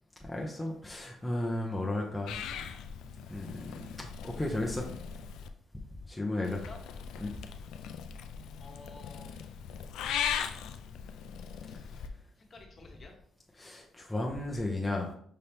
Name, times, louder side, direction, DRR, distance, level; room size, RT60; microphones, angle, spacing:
voice 1, 0.2-2.4 3.3-4.9 6.1-6.7 7.2-7.4 13.6-15.1, left 1 dB, 10° left, -1 dB, 0.7 m, -34 dB
Purr / Meow, 2.3-5.5 6.4-12.1, left 8 dB, 85° left, 0.3 m, -39 dB
voice 2, 8.6-9.6 11.6-12.1 12.4-13.1, left 3 dB, 40° left, 1 dB, 1.1 m, -52 dB
5.6 x 2.8 x 3.4 m, 0.64 s
cardioid pair, 90°, 0 cm